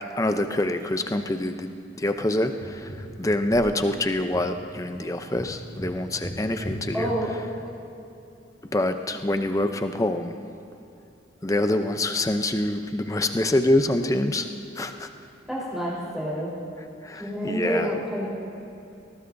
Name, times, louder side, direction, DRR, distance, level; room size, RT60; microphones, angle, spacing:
voice 1, 0.2-1.7 2.0-7.1 8.7-10.4 11.4-14.5 14.8-15.1 17.0-17.9, left 1 dB, 15° left, 7 dB, 0.5 m, -25 dB
Tap, 2.6-7.9 10.5-10.6, equal, 50° left, 3.8 m, -39 dB
voice 2, 6.9-7.3 15.5-16.5 17.2-18.3, equal, ahead, -8 dB, 3.9 m, -28 dB
20.5 x 19.0 x 2.7 m, 2.8 s
head